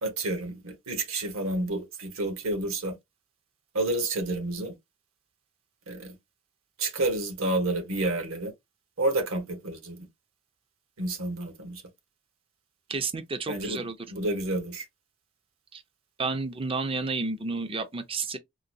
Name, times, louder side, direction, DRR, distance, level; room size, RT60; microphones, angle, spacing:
voice 1, 0.0-2.9 3.7-4.7 5.9-6.2 6.8-8.5 9.0-10.1 11.0-11.8 13.5-13.8 14.1-14.8, right 2 dB, 70° right, 1.3 m, -29 dB
voice 2, 12.9-14.0 15.7-15.8 16.2-18.4, right 3 dB, 25° right, 0.5 m, -31 dB
3.8 x 2.3 x 2.7 m
head